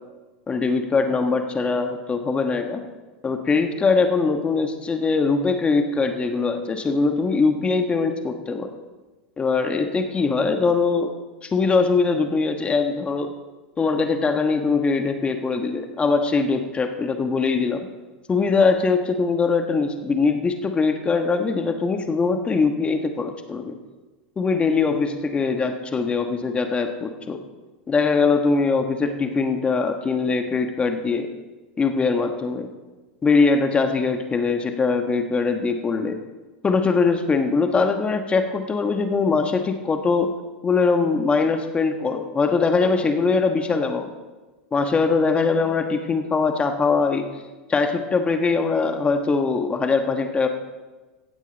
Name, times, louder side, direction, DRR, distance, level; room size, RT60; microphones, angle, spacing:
voice 1, 0.5-2.8 3.2-8.7 9.4-11.1 11.4-13.3 13.8-17.9 18.3-23.8 24.4-27.4 27.9-31.3 31.8-32.7 33.2-36.2 36.6-40.3 40.6-44.1 44.7-47.3 47.7-50.5, left 4 dB, 20° left, 6 dB, 1.3 m, -22 dB
16.0 x 8.2 x 4.1 m, 1.2 s
hypercardioid pair, 110°, 5 cm